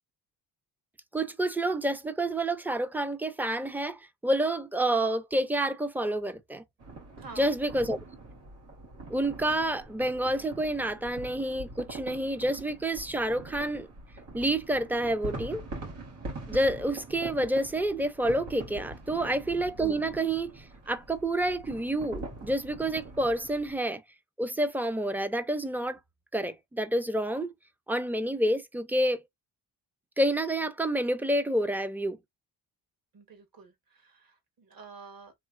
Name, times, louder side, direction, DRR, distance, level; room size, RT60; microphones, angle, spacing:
voice 1, 1.1-6.6 7.4-8.0 9.1-13.9 14.3-15.7 16.5-24.0 24.4-26.0 26.3-27.5 27.9-29.2 30.2-32.2, right 1 dB, 5° right, 0.5 m, -28 dB
sound 1, 6.8-23.8, right 2 dB, 90° right, 2.1 m, -43 dB
voice 2, 7.2-7.6 19.2-19.5 33.1-35.3, right 4 dB, 50° right, 1.5 m, -49 dB
3.1 x 3.0 x 2.5 m
cardioid pair, 80°, 43 cm